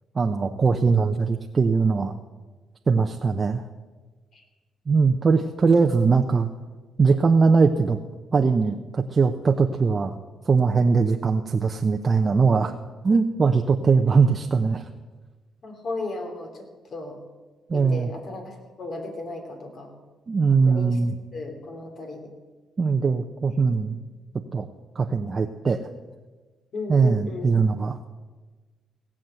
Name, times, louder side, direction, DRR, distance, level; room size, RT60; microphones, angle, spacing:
voice 1, 0.1-2.1 2.9-3.7 4.9-6.5 7.0-8.0 8.3-10.1 10.5-12.7 13.0-14.8 17.7-18.1 20.3-21.1 22.8-24.0 24.5-24.7 25.0-25.8 26.9-28.0, right 4 dB, 35° right, 4 dB, 0.8 m, -21 dB
voice 2, 15.6-17.2 17.7-19.9 20.6-21.0 21.3-22.3 23.8-24.0 26.7-27.5, left 2 dB, 55° left, 3 dB, 3.0 m, -35 dB
17.0 x 7.3 x 7.8 m, 1.3 s
cardioid pair, 90°, 0 cm